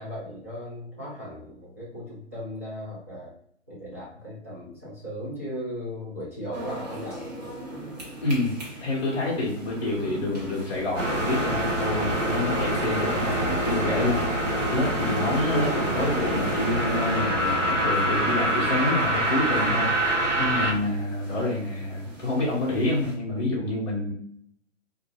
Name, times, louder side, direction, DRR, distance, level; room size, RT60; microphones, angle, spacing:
voice 1, 0.0-3.3 3.7-7.5, equal, 15° right, -10 dB, 0.4 m, -37 dB
sound 1, 6.5-23.2, right 1 dB, 35° right, 0.9 m, -42 dB
voice 2, 8.2-8.5 8.8-24.1, left 2 dB, 25° left, -6 dB, 0.7 m, -28 dB
sound 2, 11.0-20.7, right 1 dB, 90° right, 0.7 m, -25 dB
2.2 x 2.0 x 3.3 m, 0.67 s
figure-of-eight pair, 135°, 37 cm